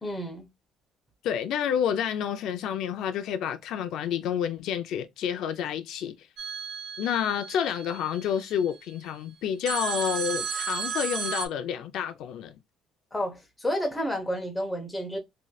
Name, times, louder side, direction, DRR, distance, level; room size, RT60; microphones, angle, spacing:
voice 1, 0.0-0.5 13.1-15.2, equal, 10° left, 0.9 m, -30 dB
voice 2, 1.2-6.2 7.0-12.5, left 8 dB, 70° left, 0.4 m, -29 dB
sound 1, 6.4-8.6 9.7-11.5, right 6 dB, 55° right, 0.6 m, -34 dB
3.1 x 2.7 x 2.3 m
cardioid pair, 140°, 0 cm